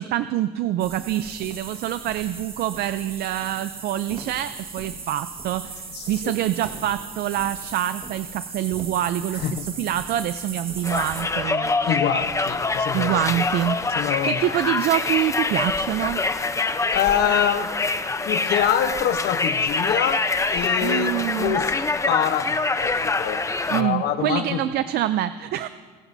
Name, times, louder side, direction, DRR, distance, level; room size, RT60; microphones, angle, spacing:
voice 1, 0.0-9.5 9.8-12.2 12.9-16.2 20.8-21.6 23.7-25.7, right 12 dB, 70° right, 12 dB, 0.5 m, -26 dB
sound 1, 0.8-11.2, right 4 dB, 35° right, 1.7 m, -37 dB
voice 2, 5.9-6.4 9.4-9.7 11.9-13.3 13.9-14.6 16.9-17.7 18.2-21.7 22.1-24.6, left 9 dB, 75° left, 9 dB, 1.0 m, -25 dB
Conversation, 10.8-23.8, left 3 dB, 15° left, 0.7 m, -25 dB
27.5 x 15.0 x 2.7 m, 1.5 s
cardioid pair, 110°, 17 cm